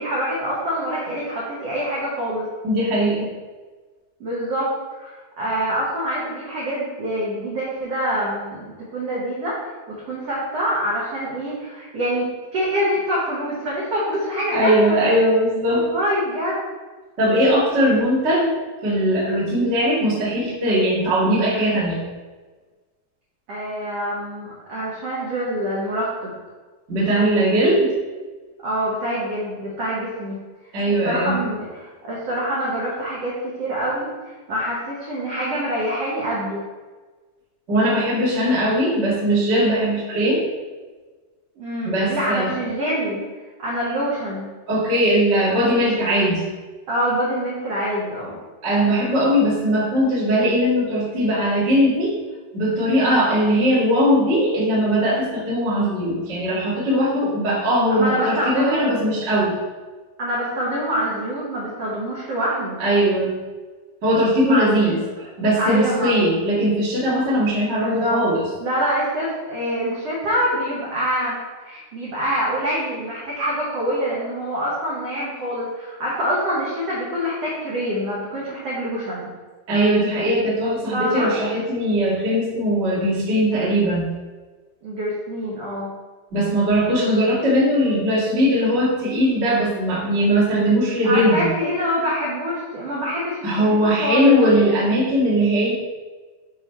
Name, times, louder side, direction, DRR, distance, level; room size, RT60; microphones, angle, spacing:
voice 1, 0.0-2.5 4.2-4.7 5.0-9.5 10.0-12.3 12.5-15.0 15.7-16.6 23.5-26.3 28.6-30.4 31.0-36.6 41.6-43.2 43.6-44.5 46.9-48.4 53.0-53.2 57.9-58.9 60.2-62.8 64.5-65.0 65.6-66.2 67.7-68.2 68.6-71.4 71.6-79.3 80.9-81.3 84.8-85.9 91.0-94.4, equal, 80° right, -6 dB, 1.4 m, -25 dB
voice 2, 2.6-3.3 14.5-15.9 17.2-18.5 18.8-22.0 26.9-27.9 30.7-31.4 37.7-40.5 41.8-42.6 44.7-46.4 48.6-52.1 52.5-59.5 62.8-63.4 64.0-65.0 65.4-68.4 79.7-84.1 86.3-91.5 93.4-95.7, equal, 50° right, -7 dB, 0.7 m, -19 dB
6.5 x 4.2 x 4.4 m, 1.3 s
omnidirectional pair, 4.7 m